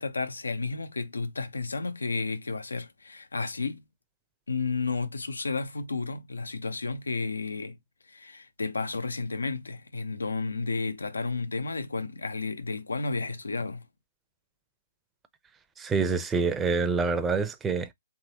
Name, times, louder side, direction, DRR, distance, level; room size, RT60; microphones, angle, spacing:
voice 1, 0.0-3.8 4.5-7.8 8.1-13.9, left 4 dB, 90° left, 0.7 m, -32 dB
voice 2, 15.8-17.9, right 4 dB, 15° right, 0.6 m, -26 dB
3.7 x 2.8 x 2.8 m
hypercardioid pair, 130°, 0 cm